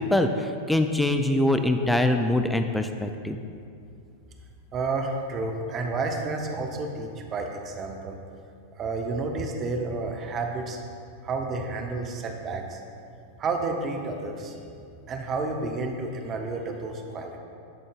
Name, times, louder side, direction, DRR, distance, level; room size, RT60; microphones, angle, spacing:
voice 1, 0.0-3.4, left 1 dB, 5° left, 6 dB, 0.3 m, -23 dB
voice 2, 4.7-8.2 8.8-10.8 11.2-12.8 13.4-14.6 15.1-17.4, right 3 dB, 30° right, 3 dB, 0.6 m, -30 dB
10.5 x 3.8 x 2.3 m, 2.4 s
figure-of-eight pair, 90°, 0 cm